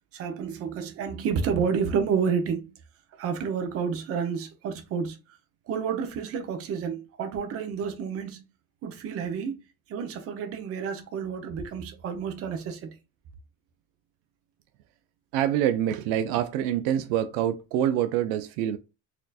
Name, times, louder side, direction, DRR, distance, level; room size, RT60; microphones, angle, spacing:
voice 1, 0.1-2.7 3.1-5.2 5.7-8.5 8.8-9.6 9.9-12.9, right 6 dB, 35° right, 0.7 m, -30 dB
voice 2, 15.3-18.8, right 11 dB, 70° right, 0.5 m, -26 dB
4.3 x 2.7 x 2.3 m
cardioid pair, 165°, 39 cm